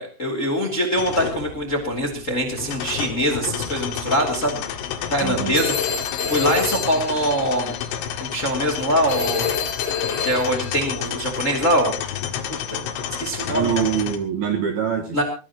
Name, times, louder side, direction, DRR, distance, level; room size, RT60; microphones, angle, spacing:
voice 1, 0.0-4.6 5.1-5.9 6.3-7.7 8.2-9.5 10.2-12.0 12.7-12.8 13.2-13.8 15.1-15.2, equal, 20° left, 4 dB, 2.1 m, -23 dB
sound 1, 1.0-14.2, left 9 dB, 85° left, 4.4 m, -30 dB
voice 2, 5.2-5.6 13.5-15.2, right 8 dB, 60° right, 3 dB, 2.8 m, -24 dB
Telephone, 5.5-7.9 9.1-10.8, left 6 dB, 65° left, 8.1 m, -27 dB
20.5 x 18.5 x 3.0 m, 0.35 s
omnidirectional pair, 5.9 m